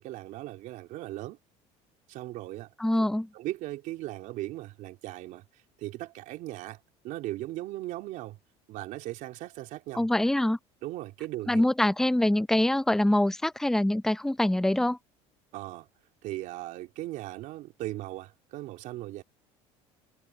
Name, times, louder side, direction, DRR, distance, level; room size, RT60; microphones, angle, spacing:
voice 1, 0.0-1.4 2.1-2.7 3.0-3.1 3.3-5.4 5.8-6.8 7.0-8.4 8.7-10.1 10.8-11.6 15.5-15.9 16.2-19.2, right 16 dB, 65° right, 3.5 m, -38 dB
voice 2, 2.8-3.3 9.9-10.6 11.5-15.0, left 1 dB, 5° left, 0.6 m, -24 dB
supercardioid pair, 105°, 14 cm